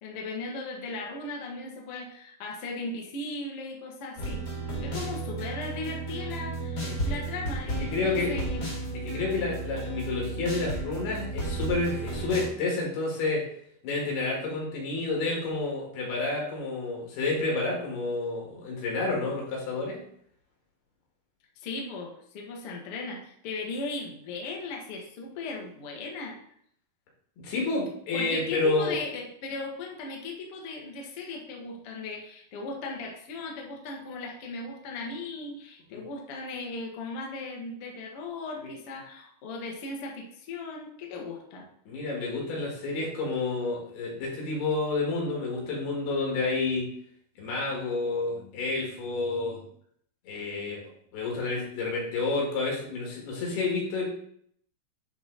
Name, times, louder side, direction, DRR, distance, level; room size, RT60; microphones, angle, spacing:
voice 1, 0.0-4.5 4.8-8.7 21.6-26.4 28.1-41.7, left 3 dB, 60° left, 0 dB, 1.5 m, -37 dB
sound 1, 4.2-12.5, right 2 dB, 30° left, 1.7 m, -33 dB
voice 2, 6.8-7.2 7.9-8.3 9.1-13.5 13.8-20.0 27.4-29.0 35.9-36.0 38.6-38.7 41.9-46.9 47.4-49.6 50.3-54.1, left 3 dB, 80° left, -1 dB, 4.1 m, -30 dB
10.0 x 3.9 x 4.0 m, 0.66 s
omnidirectional pair, 4.5 m